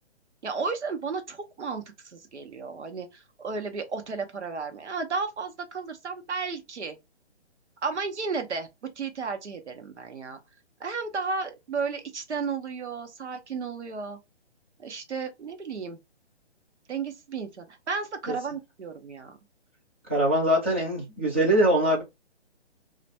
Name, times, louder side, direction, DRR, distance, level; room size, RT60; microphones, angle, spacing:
voice 1, 0.4-7.0 7.8-10.4 10.8-14.2 14.8-16.0 16.9-19.4, right 4 dB, 80° right, 0.9 m, -33 dB
voice 2, 20.1-22.0, right 1 dB, 10° right, 0.4 m, -22 dB
2.4 x 2.2 x 4.0 m
figure-of-eight pair, 140°, 34 cm